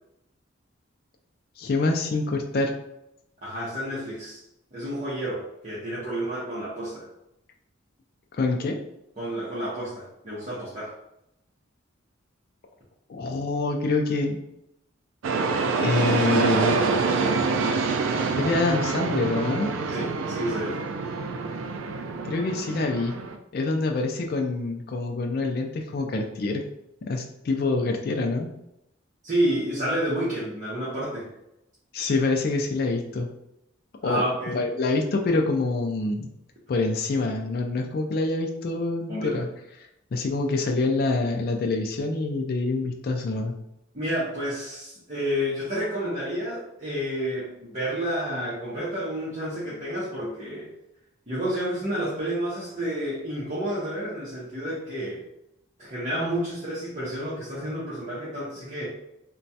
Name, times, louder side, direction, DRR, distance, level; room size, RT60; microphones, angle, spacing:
voice 1, 1.6-2.7 8.3-8.8 13.1-14.4 15.8-16.8 18.4-19.7 22.2-23.2 23.5-26.6 27.0-28.5 31.9-33.3 34.0-34.2 34.5-36.3 36.7-39.5 40.1-43.5, left 3 dB, 50° left, 3 dB, 0.3 m, -26 dB
voice 2, 3.4-4.4 4.7-7.1 9.2-10.9 19.9-20.8 29.2-31.3 34.0-34.6 39.1-39.4 43.9-50.7 51.3-55.2 55.8-58.9, equal, 35° right, -8 dB, 0.8 m, -30 dB
sound 1, 15.2-23.4, right 4 dB, 75° right, 0.3 m, -26 dB
3.0 x 2.2 x 2.7 m, 0.83 s
head